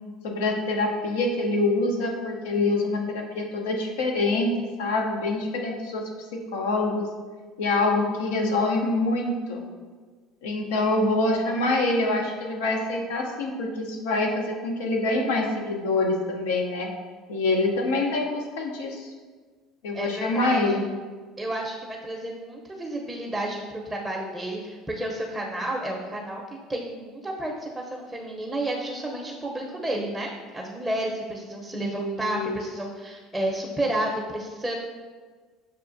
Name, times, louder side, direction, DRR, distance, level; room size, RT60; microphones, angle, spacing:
voice 1, 0.2-6.0 6.3-7.1 7.6-9.6 10.4-16.9 17.3-19.1 19.8-20.8 31.8-32.6, left 2 dB, 85° left, 1 dB, 0.7 m, -25 dB
voice 2, 19.9-20.8 21.4-34.7, right 1 dB, 10° right, -1 dB, 0.6 m, -31 dB
6.8 x 2.4 x 2.5 m, 1.5 s
supercardioid pair, 85°, 0 cm